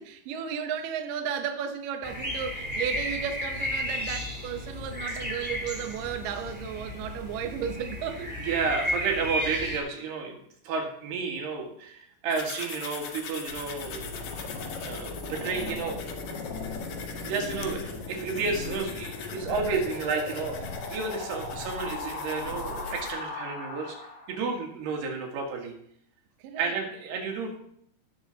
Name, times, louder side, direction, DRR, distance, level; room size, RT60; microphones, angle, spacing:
voice 1, 0.0-8.4 26.4-26.8, right 8 dB, 70° right, 2.3 m, -34 dB
sound 1, 2.0-9.8, equal, 5° right, 1.2 m, -33 dB
voice 2, 8.4-10.4 10.6-14.2 14.8-16.0 17.2-20.6 20.9-24.0 24.3-25.7 26.6-27.6, right 4 dB, 85° right, 3.9 m, -31 dB
sound 2, 12.3-23.1, left 6 dB, 65° left, 1.8 m, -42 dB
sound 3, 13.5-24.4, left 3 dB, 50° left, 3.2 m, -37 dB
16.5 x 6.9 x 4.0 m
omnidirectional pair, 4.5 m